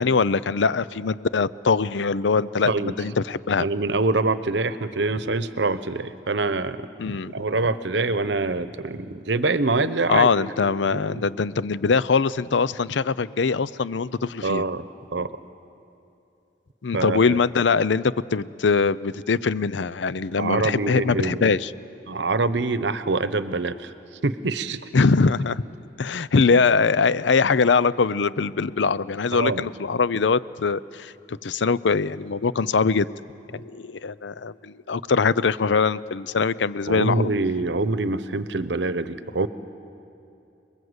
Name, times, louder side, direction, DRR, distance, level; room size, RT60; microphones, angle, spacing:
voice 1, 0.0-3.7 7.0-7.3 10.1-14.6 16.8-21.7 24.9-25.6 26.0-33.1 33.6-37.2, left 4 dB, 75° left, 17 dB, 0.6 m, -22 dB
voice 2, 3.6-6.9 7.3-11.2 14.4-14.9 15.1-15.3 16.9-17.4 20.4-21.6 22.1-23.9 24.2-24.8 29.3-29.7 36.9-39.5, right 3 dB, 70° right, 13 dB, 0.9 m, -25 dB
28.0 x 21.0 x 8.1 m, 2.8 s
head